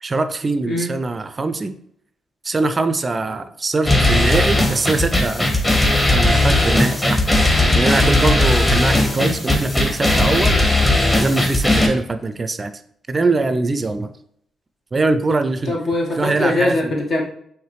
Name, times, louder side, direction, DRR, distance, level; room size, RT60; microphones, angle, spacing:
voice 1, 0.0-1.7 2.4-5.5 6.1-7.3 7.7-10.6 11.1-12.7 13.1-14.1 14.9-15.7 16.2-16.9, right 3 dB, 35° right, 10 dB, 0.4 m, -22 dB
voice 2, 0.6-1.0 9.1-9.4 15.6-17.2, left 2 dB, 60° left, -1 dB, 1.3 m, -22 dB
sound 1, 3.9-11.9, left 2 dB, 20° left, 1.2 m, -17 dB
4.7 x 3.1 x 3.2 m, 0.68 s
supercardioid pair, 55°, 0 cm